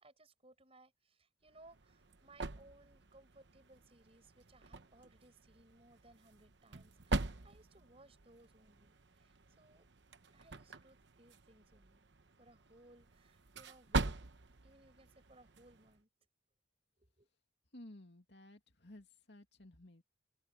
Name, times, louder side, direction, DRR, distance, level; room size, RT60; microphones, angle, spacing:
voice 1, 0.0-9.9 10.3-12.0 12.4-14.2 14.6-16.1 17.0-17.3, right 2 dB, 30° right, 5.6 m, -64 dB
sound 1, 1.5-16.0, right 3 dB, 60° right, 1.0 m, -44 dB
voice 2, 17.7-20.0, left 1 dB, 60° left, 2.6 m, -55 dB
open air
head